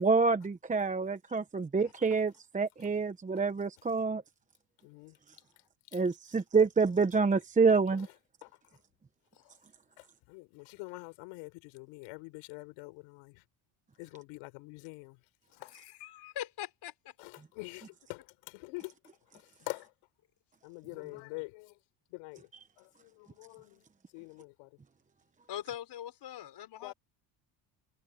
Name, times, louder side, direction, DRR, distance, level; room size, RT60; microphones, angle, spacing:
voice 1, 0.0-4.2 5.9-8.1, right 4 dB, 15° right, 0.9 m, -27 dB
voice 2, 4.8-5.2 5.9-6.0 7.9-8.1 8.4-8.5 9.4-9.5 10.0-13.4 14.0-15.2 15.6-15.8 17.2-18.9 19.3-19.9 20.6-21.8 22.1-22.5 22.8-23.8 24.1-24.7 26.8-26.9, left 28 dB, 90° left, 6.1 m, -45 dB
voice 3, 15.7-16.9 25.5-26.9, left 11 dB, 55° left, 5.6 m, -41 dB
cardioid pair, 110°, 49 cm